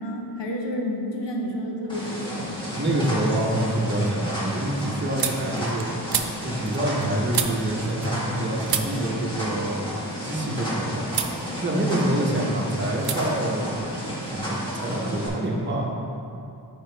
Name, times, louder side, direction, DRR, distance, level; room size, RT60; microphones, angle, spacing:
voice 1, 0.0-2.6, equal, 90° left, 0 dB, 0.9 m, -30 dB
sound 1, 1.9-15.3, equal, 10° left, 1.5 m, -32 dB
sound 2, 2.4-3.0 3.3-8.4 8.7-10.7 11.1-11.4 11.8-12.5 13.0-13.2 13.5-14.5, right 8 dB, 60° right, 0.5 m, -33 dB
voice 2, 2.7-5.9 6.4-9.9 10.2-11.1 11.6-16.0, right 1 dB, 25° right, -3 dB, 1.0 m, -26 dB
7.1 x 5.2 x 3.3 m, 2.7 s
wide cardioid pair, 90°, 42 cm